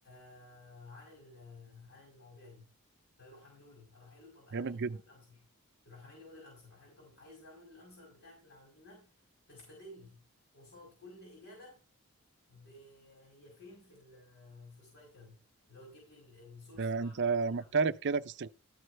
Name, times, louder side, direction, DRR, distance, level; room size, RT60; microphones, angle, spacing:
voice 1, 0.0-2.7 3.2-5.5 5.8-10.2 10.5-11.8 12.5-17.8, left 2 dB, 60° left, 5.1 m, -55 dB
voice 2, 4.5-5.0 16.8-18.5, right 4 dB, 50° right, 0.5 m, -31 dB
13.5 x 6.5 x 4.4 m
head